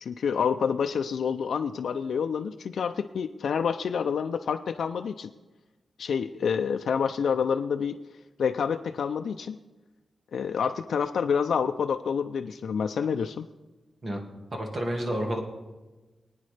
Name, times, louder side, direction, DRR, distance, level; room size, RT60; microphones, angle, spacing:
voice 1, 0.0-5.3 6.0-8.0 8.4-9.6 10.3-13.5, left 6 dB, 85° left, 6 dB, 0.4 m, -28 dB
voice 2, 14.5-15.4, equal, 35° right, 1 dB, 1.8 m, -30 dB
22.5 x 9.3 x 3.3 m, 1.2 s
wide cardioid pair, 175°, 0 cm